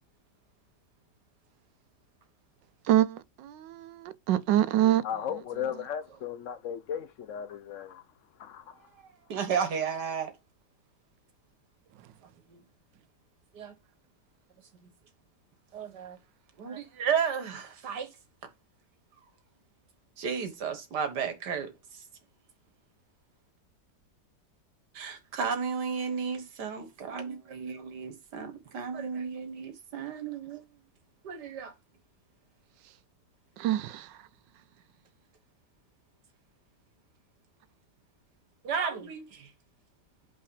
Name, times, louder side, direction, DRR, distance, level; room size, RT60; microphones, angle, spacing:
voice 1, 2.9-3.2 3.4-4.0 4.3-5.0 33.6-34.0, right 12 dB, 90° right, 1.3 m, -24 dB
voice 2, 5.0-8.0 8.4-8.8, left 9 dB, 60° left, 0.8 m, -36 dB
voice 3, 9.0-10.3 12.5-12.6 13.5-13.7 15.7-16.2 16.6-18.1 20.2-22.0 24.9-30.6 31.2-31.7 38.6-39.5, right 6 dB, 70° right, 1.9 m, -33 dB
5.6 x 4.2 x 4.9 m
omnidirectional pair, 1.9 m